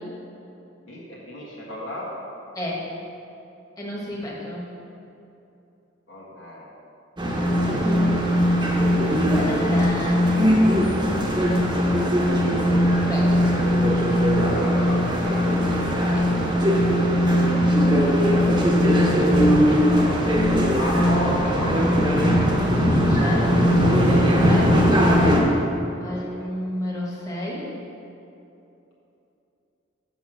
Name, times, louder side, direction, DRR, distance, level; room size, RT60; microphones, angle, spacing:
voice 1, 0.8-2.2 6.1-6.6 14.5-15.6 20.7-22.2 26.0-26.5, equal, 75° left, -6 dB, 1.7 m, -33 dB
voice 2, 3.8-4.6 7.2-8.2 9.3-10.5 11.7-11.9 13.1-13.4 16.1-16.3 22.9-24.8 26.0-27.7, equal, 20° left, -5 dB, 1.6 m, -31 dB
sound 1, 7.2-25.4, equal, 20° right, 1.1 m, -19 dB
7.0 x 6.0 x 6.2 m, 2.8 s
head